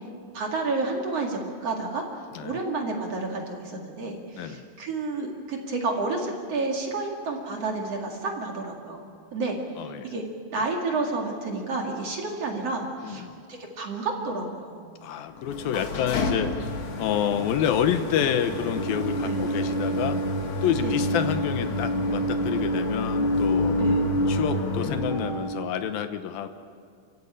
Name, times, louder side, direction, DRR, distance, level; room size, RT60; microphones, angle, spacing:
voice 1, 0.3-2.0 2.4-9.1 9.3-9.6 10.0-10.2 10.5-14.8 19.2-19.4 20.8-20.9 23.8-24.0, right 3 dB, 45° right, 1 dB, 3.0 m, -30 dB
voice 2, 9.8-10.1 13.0-13.4 15.0-20.2 20.6-23.8 24.3-26.5, left 9 dB, 75° left, 9 dB, 2.6 m, -28 dB
sound 1, 15.4-25.7, equal, 45° left, 2.0 m, -27 dB
30.0 x 15.5 x 8.7 m, 2.2 s
omnidirectional pair, 4.4 m